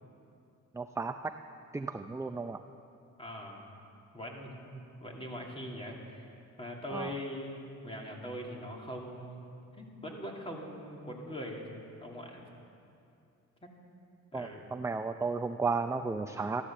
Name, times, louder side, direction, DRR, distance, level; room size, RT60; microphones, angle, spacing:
voice 1, 0.7-1.3 1.7-2.6 6.9-7.1 14.3-16.6, right 4 dB, 10° right, 7 dB, 0.5 m, -34 dB
voice 2, 3.2-3.7 4.1-6.3 6.6-12.5 14.3-14.7, equal, 20° left, 0 dB, 2.7 m, -42 dB
13.5 x 13.0 x 7.4 m, 2.6 s
cardioid pair, 90°, 30 cm